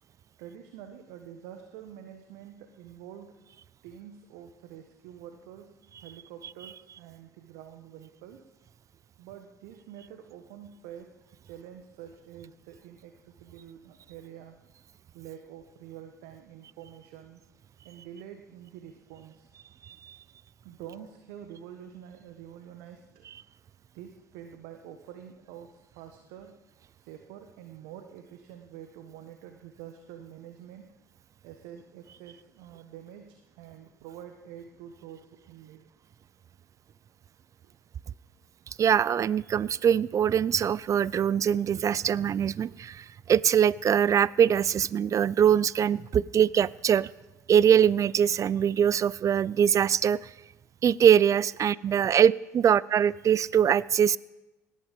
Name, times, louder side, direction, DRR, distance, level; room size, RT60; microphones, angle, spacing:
voice 1, 0.4-3.3 3.8-8.5 9.2-11.2 11.4-14.6 15.1-17.4 17.8-19.5 20.6-23.3 23.9-26.6 27.0-30.9 31.4-35.9 37.6-37.7 52.1-52.3, right 9 dB, 70° right, 6 dB, 1.2 m, -47 dB
voice 2, 38.8-47.1 47.5-50.3 50.8-54.2, right 9 dB, 40° right, 22 dB, 0.5 m, -23 dB
18.0 x 10.5 x 5.3 m, 1.0 s
hypercardioid pair, 60°, 9 cm